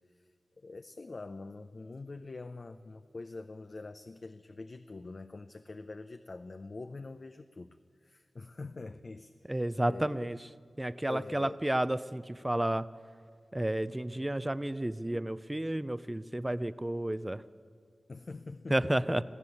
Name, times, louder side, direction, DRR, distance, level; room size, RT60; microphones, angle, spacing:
voice 1, 0.6-7.8 8.0-10.3 11.1-11.6 18.1-19.2, left 3 dB, 50° left, 9 dB, 0.6 m, -45 dB
voice 2, 9.5-10.4 10.8-12.8 13.5-17.4 18.7-19.2, right 1 dB, 15° right, 15 dB, 0.5 m, -31 dB
21.0 x 14.5 x 8.5 m, 2.1 s
wide cardioid pair, 80°, 0 cm